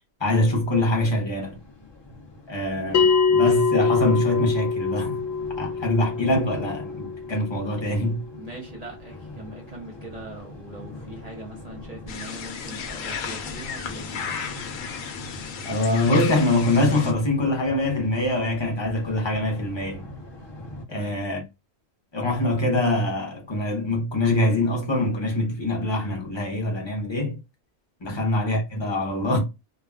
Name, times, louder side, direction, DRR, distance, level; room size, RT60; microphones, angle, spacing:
voice 1, 0.2-1.6 2.5-5.2 5.6-8.2 15.6-20.0 20.9-21.4 22.1-27.4 28.0-29.4, left 1 dB, 25° left, 0.7 m, -24 dB
sound 1, 1.3-20.9, left 1 dB, 45° left, 0.3 m, -43 dB
Bell, 2.9-8.0, left 5 dB, 60° left, 0.7 m, -24 dB
voice 2, 8.3-14.5 20.9-21.2 28.0-28.2, right 2 dB, 40° right, 0.7 m, -41 dB
sound 2, 12.1-17.1, left 7 dB, 90° left, 1.0 m, -34 dB
2.4 x 2.2 x 3.4 m
omnidirectional pair, 1.3 m